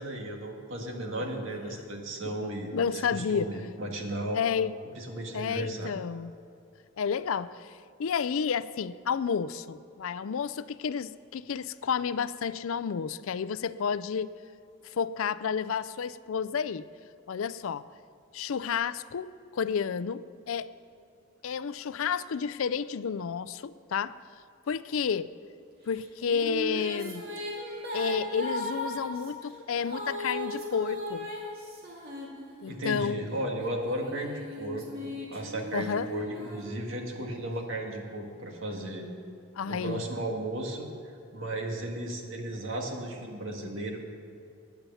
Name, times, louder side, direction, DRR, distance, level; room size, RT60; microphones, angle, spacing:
voice 1, 0.0-4.4 5.0-5.9 32.7-39.1 39.7-44.0, right 1 dB, 60° right, 1 dB, 2.0 m, -35 dB
voice 2, 2.2-3.5 4.3-4.7 5.3-6.3 7.0-7.7 8.0-14.3 14.9-16.9 17.3-17.8 18.3-20.2 20.5-20.7 21.4-24.2 24.7-25.3 25.9-27.3 27.9-31.3 32.6-33.2 35.7-36.1 39.6-40.0, left 6 dB, 70° left, 16 dB, 0.4 m, -31 dB
Female singing, 25.9-32.9 33.6-37.3, left 1 dB, 45° right, 2.6 m, -38 dB
16.0 x 10.5 x 5.7 m, 2.5 s
head